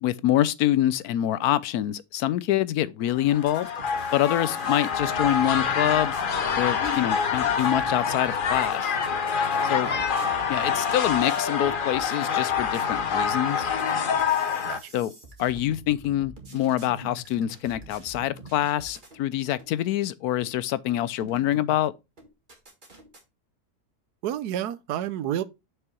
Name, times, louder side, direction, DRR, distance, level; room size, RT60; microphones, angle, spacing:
voice 1, 0.0-3.7 4.1-6.1 6.5-9.0 9.6-9.9 10.5-13.7 14.9-15.1 15.4-21.9, left 12 dB, 75° left, 1.1 m, -25 dB
sound 1, 3.2-14.8, left 6 dB, 50° left, 0.7 m, -26 dB
sound 2, 3.4-19.2 19.6-19.7 20.4-20.5 20.9-21.8 22.2-23.2, right 2 dB, 30° right, 1.8 m, -46 dB
voice 2, 24.2-25.4, right 11 dB, 85° right, 1.2 m, -30 dB
6.6 x 5.5 x 4.4 m
omnidirectional pair, 1.6 m